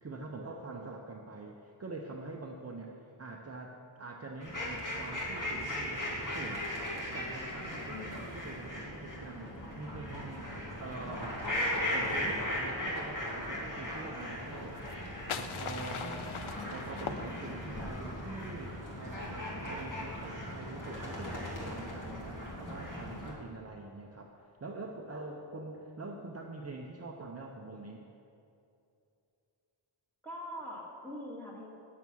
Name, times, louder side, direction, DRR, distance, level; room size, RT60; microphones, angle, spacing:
voice 1, 0.0-6.6 7.1-11.4 11.9-14.8 15.4-16.3 16.7-28.0, right 3 dB, 30° right, 0 dB, 0.8 m, -45 dB
sound 1, 4.4-23.3, left 1 dB, 40° left, 2.4 m, -38 dB
voice 2, 7.9-8.4 15.9-16.8 22.5-23.4 30.2-31.7, left 1 dB, 5° left, -4 dB, 2.1 m, -45 dB
sound 2, 14.8-17.8, left 7 dB, 85° left, 0.6 m, -41 dB
9.5 x 7.0 x 6.3 m, 2.6 s
wide cardioid pair, 110°, 48 cm